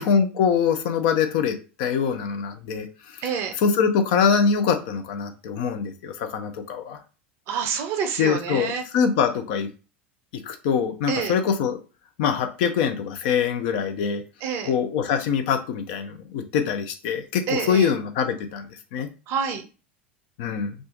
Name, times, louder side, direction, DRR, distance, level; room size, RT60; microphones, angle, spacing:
voice 1, 0.0-2.9 3.1-3.2 3.6-7.0 8.2-9.7 10.3-11.8 12.2-14.2 14.7-19.1 20.4-20.7, left 7 dB, 50° left, 6 dB, 0.5 m, -24 dB
voice 2, 3.2-3.6 7.5-8.8 11.1-11.3 14.4-14.7 17.5-17.9 19.3-19.6, right 6 dB, 40° right, 6 dB, 0.6 m, -27 dB
2.5 x 2.4 x 3.7 m, 0.33 s
figure-of-eight pair, 80°, 6 cm